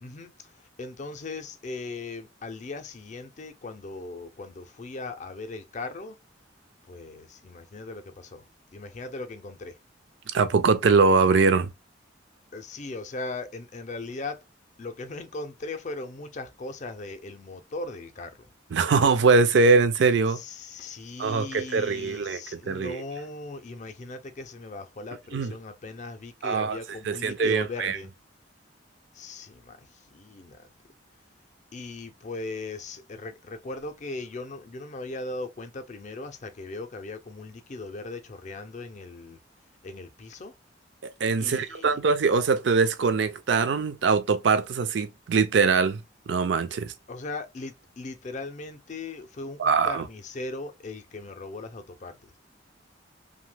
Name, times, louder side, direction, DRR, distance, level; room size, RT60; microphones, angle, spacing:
voice 1, 0.0-0.5 0.8-6.2 6.9-8.4 8.7-9.8 12.5-14.4 14.8-18.5 20.3-28.1 29.1-30.7 31.7-39.4 39.8-40.5 41.4-42.0 47.1-52.3, left 3 dB, 40° left, 0.4 m, -38 dB
voice 2, 10.3-11.7 18.7-20.4 21.2-23.0 25.3-25.5 26.4-26.8 27.1-28.0 41.0-46.0 46.3-46.9 49.6-50.1, right 4 dB, 65° right, 0.4 m, -22 dB
2.8 x 2.2 x 3.2 m
head